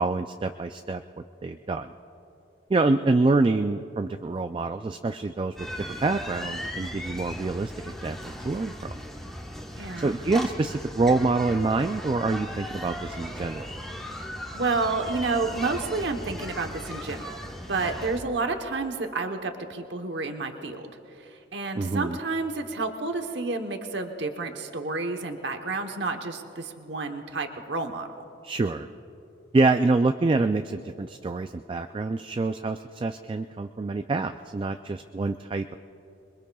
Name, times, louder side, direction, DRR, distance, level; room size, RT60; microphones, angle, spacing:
voice 1, 0.0-1.9 2.7-5.7 6.0-9.0 10.0-13.7 21.8-22.2 28.4-28.9 29.5-35.8, right 3 dB, 30° right, 7 dB, 0.3 m, -26 dB
sound 1, 5.6-18.2, equal, ahead, 1.1 m, -37 dB
voice 2, 9.8-10.1 14.3-17.4 17.7-20.9 21.2-28.1, right 3 dB, 75° right, 5 dB, 1.0 m, -30 dB
26.5 x 22.5 x 2.3 m, 2.8 s
head